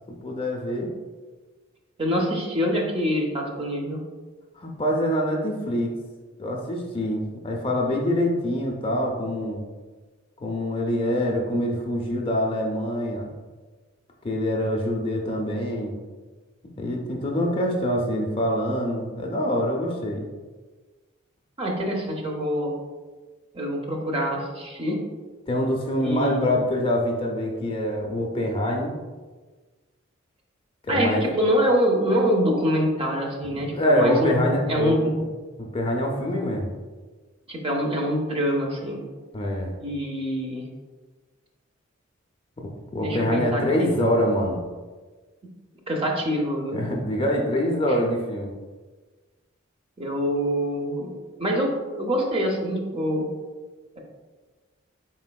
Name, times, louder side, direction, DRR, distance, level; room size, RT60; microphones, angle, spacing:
voice 1, 0.1-0.9 4.5-5.9 6.4-9.6 10.4-13.3 14.2-16.0 16.8-20.3 25.5-28.9 30.8-31.2 33.5-35.0 35.6-36.7 39.3-39.7 42.6-44.6 46.7-48.5, equal, 25° left, 0 dB, 0.4 m, -25 dB
voice 2, 2.0-4.0 21.6-22.7 23.5-25.0 26.0-26.5 30.9-34.4 34.7-35.1 37.5-39.0 39.8-40.6 43.0-44.1 45.9-46.8 50.0-53.3, equal, 25° right, 0 dB, 0.6 m, -25 dB
4.3 x 3.9 x 2.2 m, 1.3 s
head